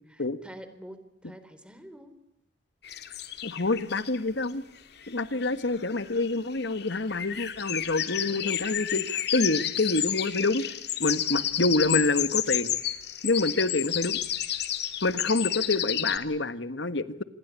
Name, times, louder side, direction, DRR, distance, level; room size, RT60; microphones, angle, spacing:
voice 1, 0.1-2.2 5.3-5.6 8.2-8.8 11.3-11.7, equal, 5° right, 11 dB, 3.6 m, -48 dB
sound 1, 2.8-4.5 5.0-5.1 5.4-5.5 5.8-16.2, left 11 dB, 65° left, 2.3 m, -31 dB
voice 2, 3.4-4.6 5.1-10.6 11.0-12.7 13.2-14.2 15.0-17.2, left 2 dB, 85° left, 13 dB, 1.7 m, -27 dB
27.5 x 21.5 x 8.4 m, 0.85 s
head